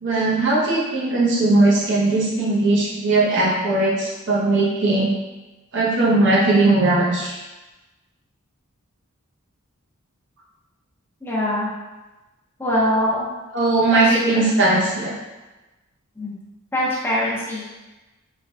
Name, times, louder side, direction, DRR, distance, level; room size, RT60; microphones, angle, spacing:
voice 1, 0.0-5.1 5.7-7.3 13.5-15.2, right 2 dB, 60° right, -5 dB, 0.8 m, -19 dB
voice 2, 11.2-11.7 12.6-13.3 13.9-14.4 16.2-16.3 16.7-17.6, equal, 10° left, -7 dB, 0.6 m, -23 dB
3.2 x 2.1 x 2.6 m, 1.1 s
head